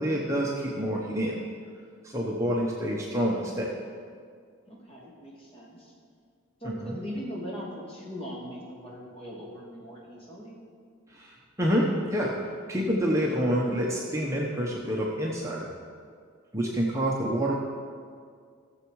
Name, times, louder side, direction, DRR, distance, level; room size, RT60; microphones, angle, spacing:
voice 1, 0.0-1.3 2.0-3.7 6.6-7.0 11.1-12.4 12.7-15.7 16.5-17.5, equal, 15° right, -3 dB, 1.0 m, -27 dB
voice 2, 4.7-5.9 6.6-10.6, equal, 30° left, -4 dB, 2.7 m, -40 dB
16.5 x 7.2 x 4.8 m, 2.1 s
head